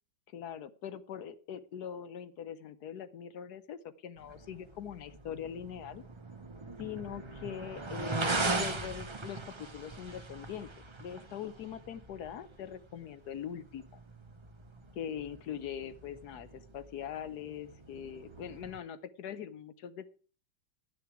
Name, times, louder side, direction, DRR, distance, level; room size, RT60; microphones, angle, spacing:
voice 1, 0.3-6.0 6.8-10.7 11.0-14.0 14.9-20.1, left 9 dB, 65° left, 13 dB, 1.2 m, -42 dB
sound 1, 4.2-18.8, right 3 dB, 40° right, 0.4 m, -40 dB
11.0 x 10.5 x 4.7 m, 0.38 s
omnidirectional pair, 2.0 m